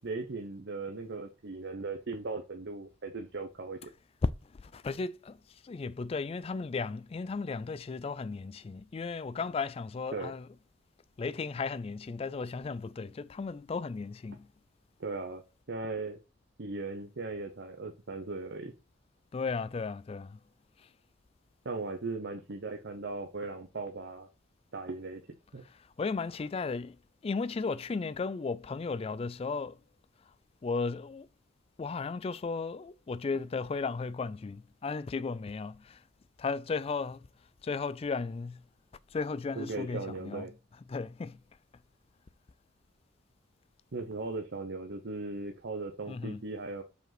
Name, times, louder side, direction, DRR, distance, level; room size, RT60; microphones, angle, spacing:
voice 1, 0.0-3.9 10.1-10.3 15.0-15.4 15.7-16.2 16.6-18.7 21.6-24.3 24.7-25.2 25.5-25.6 39.6-40.5 43.9-46.8, right 3 dB, 60° right, 0.8 m, -38 dB
voice 2, 4.6-5.4 5.6-10.5 11.2-14.5 19.3-20.4 26.0-27.0 27.2-29.8 30.6-31.3 31.8-36.0 36.4-37.3 37.6-38.6 39.1-40.5 40.9-41.4 46.1-46.4, left 4 dB, 30° left, 0.3 m, -35 dB
5.1 x 5.0 x 5.8 m
head